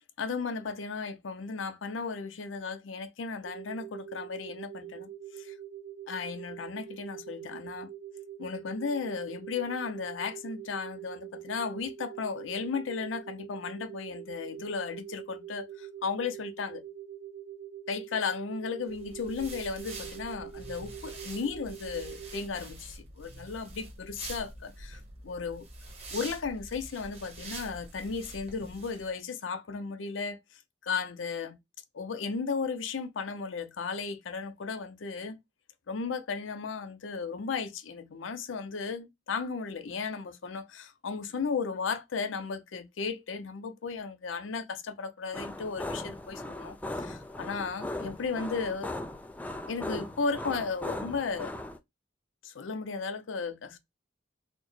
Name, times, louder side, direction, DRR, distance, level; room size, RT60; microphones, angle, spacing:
voice 1, 0.2-5.5 6.1-7.9 8.4-16.8 17.9-25.7 26.1-30.4 30.8-31.6 31.9-35.4 35.9-48.9 49.7-51.5 52.4-53.8, left 5 dB, 90° left, 0.5 m, -35 dB
sound 1, 3.4-22.5, right 10 dB, 80° right, 0.6 m, -44 dB
sound 2, 18.9-29.1, right 2 dB, 35° right, 1.1 m, -45 dB
sound 3, 45.3-51.8, left 1 dB, 10° left, 0.3 m, -38 dB
4.2 x 2.1 x 3.0 m
head